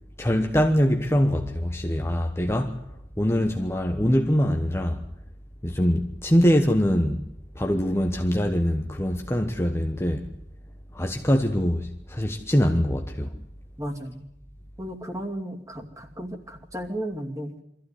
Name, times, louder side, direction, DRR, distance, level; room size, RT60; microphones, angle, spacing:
voice 1, 0.2-2.8 3.2-5.0 5.6-7.2 7.5-10.3 10.9-13.3, equal, 15° left, 1.1 m, -23 dB
voice 2, 13.8-14.2 14.8-17.6, right 1 dB, 20° right, 2.6 m, -34 dB
24.0 x 14.5 x 9.9 m
head